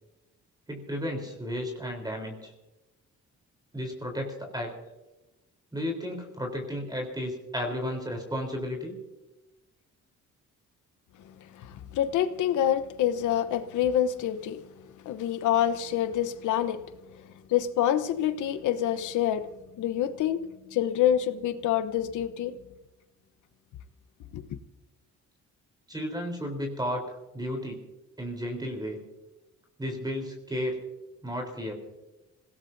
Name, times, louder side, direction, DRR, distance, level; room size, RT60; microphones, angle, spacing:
voice 1, 0.7-2.5 3.7-4.7 5.7-9.0 25.9-27.0 27.3-27.9 28.2-29.0 29.8-30.8 31.2-31.8, equal, 15° right, 3.8 m, -33 dB
voice 2, 11.6-14.6 15.0-16.8 17.5-19.5 19.8-22.6 24.3-24.5, left 10 dB, 80° left, 1.0 m, -27 dB
26.5 x 17.5 x 2.7 m
cardioid pair, 90°, 30 cm